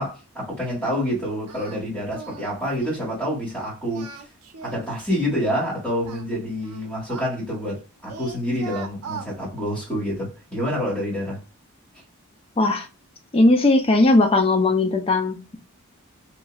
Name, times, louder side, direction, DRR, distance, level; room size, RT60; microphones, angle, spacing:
voice 1, 0.0-4.2 4.6-11.4, equal, 5° left, 1.4 m, -27 dB
Singing, 1.5-1.8 2.1-2.5 2.8-3.1 3.8-5.4 6.0-7.8 8.1-9.3, right 4 dB, 80° right, 0.6 m, -39 dB
voice 2, 13.3-15.6, left 2 dB, 25° left, 0.5 m, -18 dB
3.0 x 2.6 x 2.3 m
head